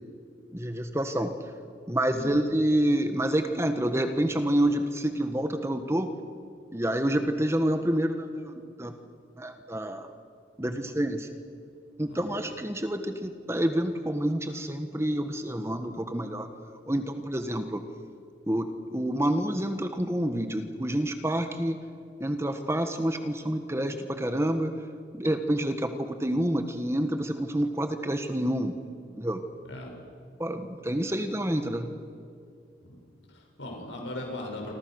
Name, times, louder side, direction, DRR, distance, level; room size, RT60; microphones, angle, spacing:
voice 1, 0.5-1.3 1.9-6.1 6.7-8.9 9.4-10.1 10.6-11.3 12.0-16.5 16.9-17.8 18.5-21.8 22.2-24.7 25.1-28.8 29.2-29.4 30.4-31.9, right 1 dB, 15° right, 7 dB, 1.4 m, -28 dB
voice 2, 2.1-2.4 10.6-10.8 12.1-12.3 29.7-29.9 32.8-32.9 33.3-34.7, left 1 dB, 85° left, 1 dB, 6.8 m, -38 dB
28.0 x 26.0 x 6.5 m, 2.4 s
head